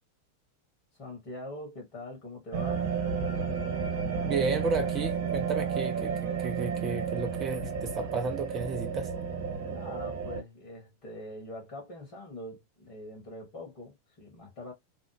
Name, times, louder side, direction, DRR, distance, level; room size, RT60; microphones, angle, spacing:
voice 1, 0.9-2.9 9.6-14.7, left 1 dB, 45° left, 1.7 m, -43 dB
sound 1, 2.5-10.4, right 6 dB, 60° right, 1.2 m, -32 dB
voice 2, 4.2-9.1, right 4 dB, 30° right, 0.6 m, -33 dB
3.3 x 2.1 x 3.2 m
figure-of-eight pair, 90°, 0 cm